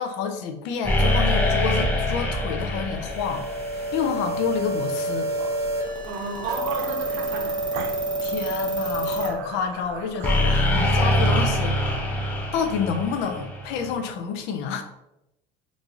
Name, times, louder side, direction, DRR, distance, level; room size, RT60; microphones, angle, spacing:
voice 1, 0.0-3.5 3.7-5.3 8.2-11.8 12.5-14.8, left 6 dB, 60° left, 5 dB, 0.5 m, -28 dB
sound 1, 0.8-4.5 10.2-13.9, left 1 dB, 10° left, 0.5 m, -24 dB
sound 2, 3.1-9.3, right 2 dB, 20° right, 0.8 m, -28 dB
sound 3, 5.3-11.1, right 5 dB, 50° right, 0.4 m, -41 dB
voice 2, 6.0-7.6, right 4 dB, 85° right, 3 dB, 0.8 m, -32 dB
2.9 x 2.7 x 3.6 m, 0.90 s
cardioid pair, 160°, 21 cm